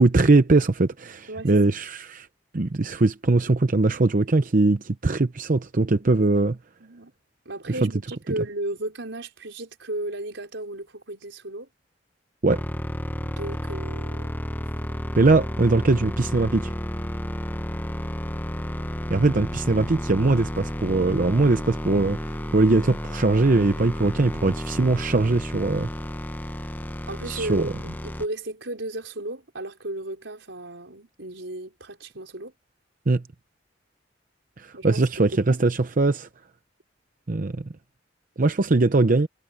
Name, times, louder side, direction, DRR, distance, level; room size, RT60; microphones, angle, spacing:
voice 1, 0.0-2.3 2.5-6.6 7.8-7.9 8.3-8.4 12.4-12.6 15.2-16.7 19.1-25.9 27.3-27.7 33.1-33.2 34.6-36.3 37.3-37.7 38.4-39.3, right 3 dB, 45° right, 0.7 m, -21 dB
voice 2, 1.3-1.6 6.2-6.3 6.8-7.1 7.4-11.7 13.2-14.3 27.1-27.7 28.0-32.5 34.7-35.6, right 1 dB, 85° right, 4.9 m, -34 dB
sound 1, 12.5-28.3, left 1 dB, 10° left, 0.9 m, -32 dB
head